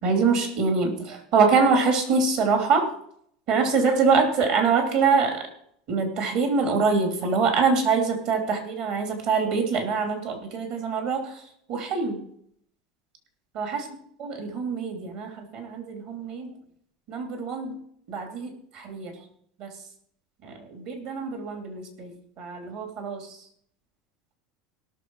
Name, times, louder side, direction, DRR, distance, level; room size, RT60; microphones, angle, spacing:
voice 1, 0.0-2.9 3.5-5.4 5.9-11.3 11.7-12.2 13.5-13.9 14.2-16.5 17.1-17.8 18.1-19.1 19.6-19.7 20.4-23.4, right 5 dB, 55° right, 5 dB, 3.2 m, -24 dB
18.0 x 6.6 x 4.8 m, 0.67 s
supercardioid pair, 135°, 2 cm